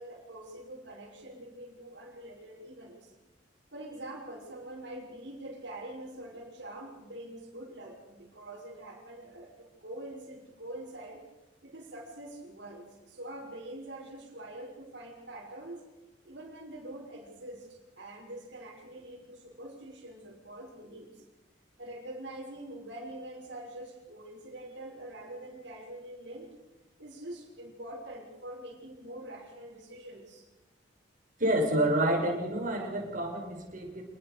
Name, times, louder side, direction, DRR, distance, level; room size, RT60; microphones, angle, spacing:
voice 1, 0.0-3.1 3.7-11.2 11.6-15.8 16.2-21.2 21.8-26.6 27.0-30.5, right 1 dB, 65° right, -5 dB, 6.3 m, -45 dB
voice 2, 31.4-34.0, right 1 dB, 45° right, 1 dB, 6.3 m, -28 dB
27.0 x 20.0 x 6.9 m, 1.1 s
head